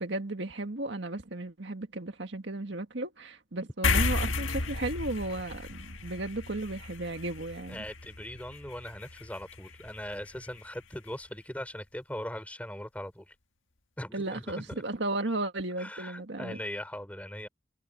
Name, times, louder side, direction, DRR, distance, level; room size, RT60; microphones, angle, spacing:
voice 1, 0.0-7.8 14.1-16.6, right 2 dB, 70° right, 1.8 m, -35 dB
sound 1, 3.8-10.6, left 3 dB, 85° left, 1.6 m, -33 dB
voice 2, 7.7-13.3 14.0-14.7 15.8-17.5, left 1 dB, 5° left, 3.9 m, -40 dB
head